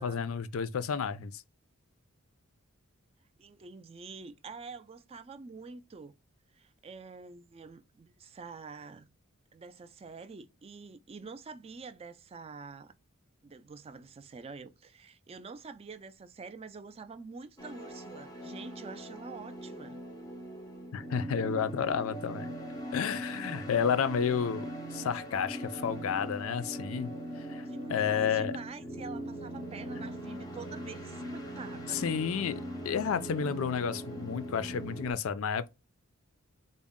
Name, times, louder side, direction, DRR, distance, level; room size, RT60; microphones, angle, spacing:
voice 1, 0.0-1.4 20.9-22.5 22.9-27.1 27.4-28.6 31.9-35.7, left 7 dB, 65° left, 0.4 m, -31 dB
voice 2, 3.4-6.1 6.5-9.1 9.5-12.9 13.4-20.0 27.7-32.0, right 4 dB, 25° right, 0.3 m, -47 dB
sound 1, 17.6-35.1, right 1 dB, 15° left, 0.6 m, -41 dB
4.0 x 2.1 x 3.5 m
head